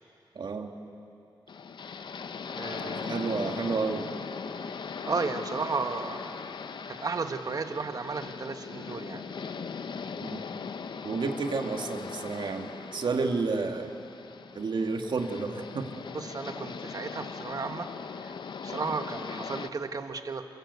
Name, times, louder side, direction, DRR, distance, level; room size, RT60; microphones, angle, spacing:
voice 1, 0.4-0.7 2.8-4.1 10.2-10.4 11.0-13.9 14.5-15.9, right 4 dB, 65° right, 4 dB, 2.0 m, -31 dB
sound 1, 1.5-19.7, left 5 dB, 65° left, 0.9 m, -39 dB
voice 2, 2.6-3.1 5.1-6.4 6.9-9.4 16.1-17.9 18.2-18.3 18.6-20.4, right 4 dB, 50° right, 7 dB, 1.5 m, -34 dB
28.0 x 22.0 x 8.3 m, 2.8 s
wide cardioid pair, 110°, 8 cm